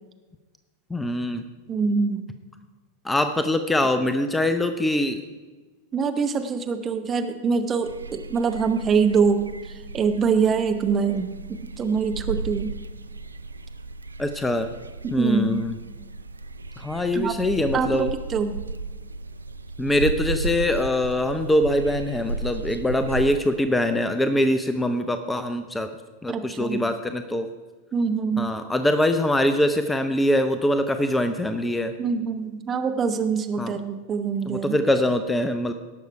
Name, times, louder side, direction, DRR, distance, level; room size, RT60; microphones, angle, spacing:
voice 1, 0.9-1.4 3.0-5.2 14.2-14.7 15.1-15.8 16.8-18.1 19.8-25.9 26.2-27.5 28.4-31.9 33.6-33.8 34.5-35.7, left 1 dB, 10° left, 9 dB, 0.6 m, -23 dB
voice 2, 1.7-2.3 5.9-12.7 15.0-15.7 17.1-17.3 17.7-18.6 26.3-26.8 27.9-28.5 32.0-34.8, right 5 dB, 25° right, 7 dB, 0.9 m, -24 dB
sound 1, 7.8-23.4, right 3 dB, 75° right, 0.4 m, -34 dB
17.5 x 6.5 x 4.8 m, 1.3 s
figure-of-eight pair, 90°, 0 cm